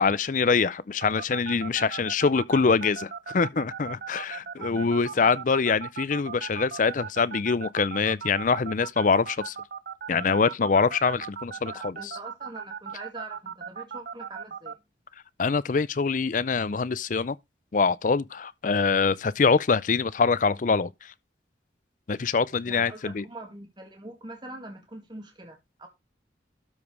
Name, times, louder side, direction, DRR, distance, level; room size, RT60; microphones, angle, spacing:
voice 1, 0.0-9.6 10.1-12.2 15.4-17.4 17.7-21.1 22.1-23.2, left 5 dB, 45° left, 0.5 m, -24 dB
sound 1, 1.0-14.7, right 6 dB, 55° right, 0.7 m, -37 dB
voice 2, 4.1-5.3 11.7-14.8 22.7-25.9, right 2 dB, 25° right, 2.0 m, -44 dB
12.5 x 5.0 x 4.7 m
head